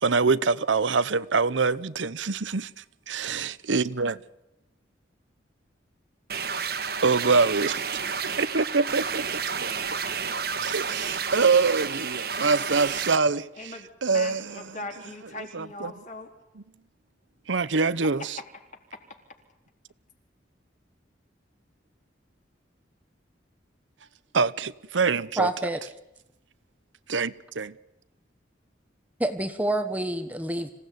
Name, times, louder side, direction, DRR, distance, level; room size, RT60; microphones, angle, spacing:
voice 1, 0.0-2.7 3.1-4.2 7.0-7.9 8.2-9.7 10.6-13.7 14.0-14.8 15.5-15.9 16.6-16.7 17.5-18.4 24.3-25.5 27.1-27.7, right 4 dB, 85° right, 0.9 m, -25 dB
sound 1, 6.3-13.2, right 6 dB, 55° right, 1.7 m, -31 dB
voice 2, 13.6-16.3 18.9-19.0, left 2 dB, 40° left, 4.0 m, -40 dB
voice 3, 25.4-25.8 29.2-30.7, right 1 dB, 10° right, 1.2 m, -27 dB
26.0 x 17.0 x 9.5 m
head